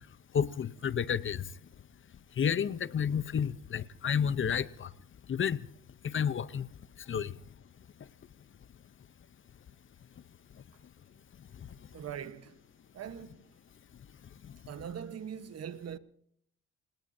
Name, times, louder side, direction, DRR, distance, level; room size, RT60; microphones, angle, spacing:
voice 1, 0.3-1.4 2.4-4.9 5.3-5.6 6.0-6.7 7.1-7.3, left 7 dB, 40° left, 0.8 m, -30 dB
voice 2, 11.9-12.6 12.9-13.5 14.7-16.0, right 8 dB, 55° right, 1.2 m, -42 dB
29.0 x 18.5 x 2.7 m
cardioid pair, 90°, 30 cm